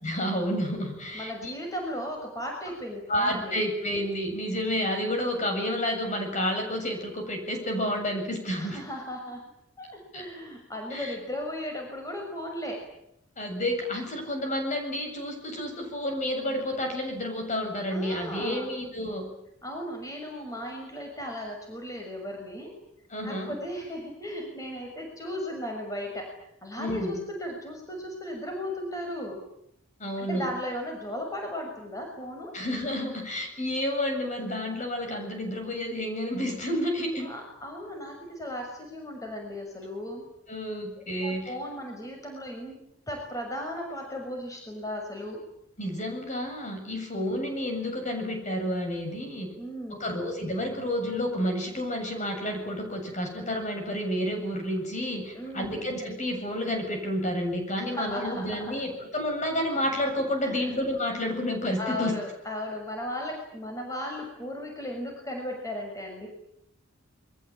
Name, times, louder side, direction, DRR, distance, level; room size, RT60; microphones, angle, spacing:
voice 1, 0.0-1.5 3.1-8.8 10.1-10.2 10.9-11.1 13.4-19.3 23.1-23.6 26.8-27.2 30.0-30.5 32.5-37.3 40.5-41.5 45.8-49.5 49.9-62.2, equal, 35° left, 4 dB, 7.6 m, -30 dB
voice 2, 1.1-3.6 8.6-9.5 9.8-12.8 17.9-18.8 19.6-22.7 23.2-29.4 30.2-32.5 37.2-40.3 41.0-45.4 49.5-50.2 55.3-55.9 57.8-58.7 60.4-60.8 61.8-66.3, left 1 dB, 15° left, 2 dB, 6.5 m, -36 dB
28.5 x 23.0 x 8.9 m, 0.78 s
head